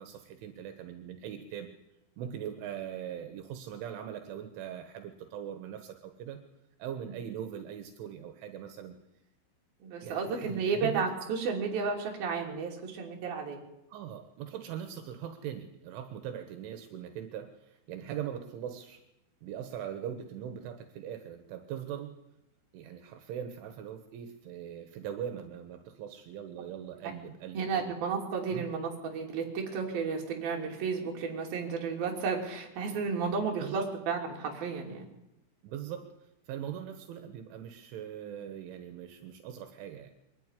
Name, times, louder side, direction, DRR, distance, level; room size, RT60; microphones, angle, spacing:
voice 1, 0.0-1.7 2.2-6.4 6.8-9.0 10.0-11.0 13.9-19.0 19.4-22.2 22.7-28.0 28.5-28.7 33.6-33.9 35.6-40.1, right 9 dB, 80° right, 7 dB, 3.7 m, -41 dB
voice 2, 9.8-13.6 27.5-35.0, right 5 dB, 55° right, 1 dB, 4.4 m, -32 dB
23.5 x 12.5 x 9.9 m, 0.90 s
omnidirectional pair, 5.6 m